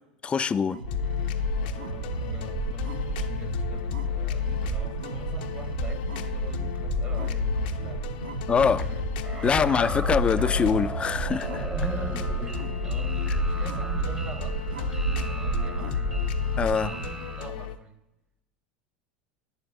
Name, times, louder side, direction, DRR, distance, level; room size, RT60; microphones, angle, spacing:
voice 1, 0.2-0.8 8.5-8.9 9.4-11.7 16.6-16.9, left 6 dB, 20° left, 0.3 m, -24 dB
sound 1, 0.7-17.1, right 4 dB, 85° right, 0.7 m, -32 dB
sound 2, 0.9-17.8, left 10 dB, 70° left, 0.6 m, -32 dB
voice 2, 1.5-9.7 11.7-16.4 16.7-18.0, right 3 dB, 30° right, 1.0 m, -43 dB
sound 3, 9.2-17.5, right 1 dB, 10° right, 0.7 m, -39 dB
11.5 x 9.1 x 2.6 m
hypercardioid pair, 85°, 5 cm